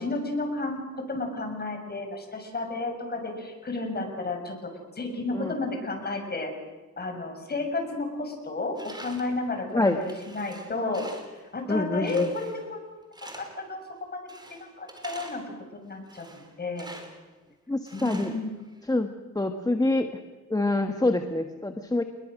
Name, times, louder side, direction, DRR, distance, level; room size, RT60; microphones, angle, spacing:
voice 1, 0.0-4.5 4.9-6.5 7.0-11.1 11.5-12.8 13.3-15.4 15.7-16.9 17.9-18.6, left 2 dB, 30° left, 4 dB, 6.8 m, -32 dB
Tools, 8.8-9.4 9.9-11.4 12.1-12.8 13.1-13.7 14.3-15.6 16.1-17.3 17.9-18.9, right 1 dB, 15° right, 3.9 m, -46 dB
voice 2, 11.7-12.3 17.7-18.3 18.9-19.1 19.3-20.1 20.5-22.0, left 2 dB, 10° left, 6 dB, 1.5 m, -26 dB
29.0 x 21.0 x 6.5 m, 1.2 s
cardioid pair, 90°, 30 cm